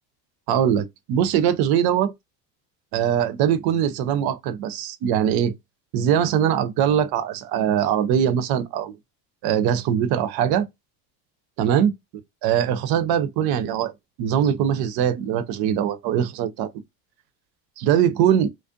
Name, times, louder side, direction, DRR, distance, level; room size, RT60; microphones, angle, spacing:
voice 1, 0.5-2.1 2.9-5.5 5.9-8.9 9.4-10.7 11.6-11.9 12.4-13.9 14.2-16.7 17.8-18.5, right 9 dB, 50° right, 0.6 m, -21 dB
2.5 x 2.1 x 2.4 m
supercardioid pair, 115°, 48 cm